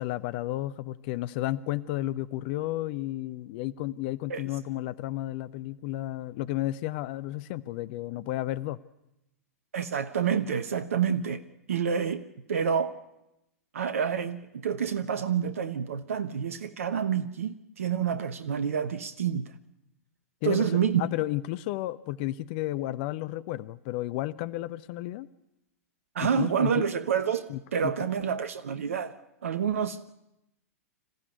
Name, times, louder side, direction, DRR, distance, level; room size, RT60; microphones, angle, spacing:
voice 1, 0.0-8.8 20.4-20.7 21.0-25.3 26.2-26.9 27.5-28.4, left 15 dB, 45° left, 0.8 m, -32 dB
voice 2, 9.7-11.4 11.7-13.0 13.7-19.5 20.4-21.1 26.1-29.1 29.4-30.1, right 7 dB, 65° right, 1.1 m, -28 dB
27.0 x 15.0 x 9.5 m
figure-of-eight pair, 105°, 8 cm